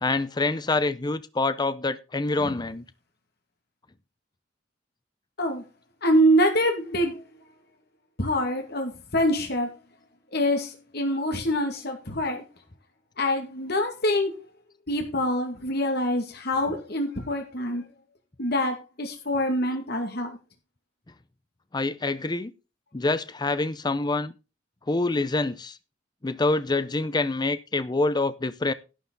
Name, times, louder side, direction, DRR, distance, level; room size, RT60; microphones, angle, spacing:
voice 1, 0.0-2.8 21.7-22.5 22.9-24.3 24.9-25.8 26.2-28.7, left 2 dB, 25° left, 0.6 m, -26 dB
voice 2, 6.0-7.2 8.2-9.7 10.3-12.4 13.2-14.3 14.9-17.8 18.4-20.4, equal, 60° left, 2.3 m, -25 dB
11.5 x 9.3 x 4.0 m
head